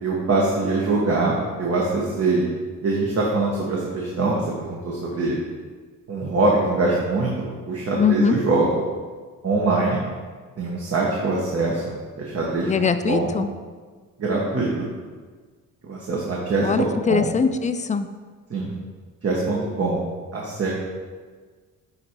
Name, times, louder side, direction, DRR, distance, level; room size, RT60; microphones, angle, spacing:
voice 1, 0.0-2.5 2.8-5.4 6.1-7.3 7.7-8.8 9.4-10.0 10.6-13.3 14.2-14.9 15.8-17.3 18.5-18.7 19.2-20.0 20.3-20.7, right 3 dB, 45° right, -4 dB, 1.2 m, -23 dB
voice 2, 8.0-8.4 12.7-13.5 16.6-18.1, left 5 dB, 25° left, 10 dB, 0.4 m, -21 dB
8.4 x 2.8 x 4.5 m, 1.5 s
cardioid pair, 80°, 33 cm